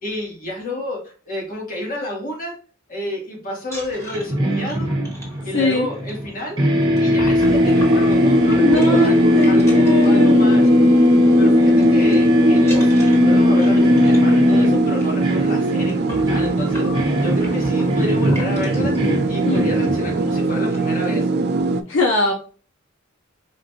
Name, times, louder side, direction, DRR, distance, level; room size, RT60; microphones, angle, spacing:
voice 1, 0.0-2.5 2.9-4.9 5.4-6.6 7.0-10.7 11.4-16.9 17.2-18.9 19.3-21.3, left 1 dB, 45° left, -1 dB, 1.6 m, -30 dB
sound 1, 3.6-10.7 11.0-11.3 11.6-12.1 12.6-19.0 19.6-19.7 20.1-20.2 20.5-21.0, left 1 dB, 15° left, 1.5 m, -38 dB
sound 2, 4.1-6.3 6.6-20.5, left 1 dB, 25° right, 1.1 m, -18 dB
voice 2, 5.5-5.9 8.6-10.5 19.4-19.7 21.9-22.3, left 2 dB, 65° left, 1 dB, 0.6 m, -21 dB
sound 3, 7.4-21.8, right 3 dB, 55° right, 0.4 m, -21 dB
5.1 x 2.5 x 2.7 m, 0.39 s
head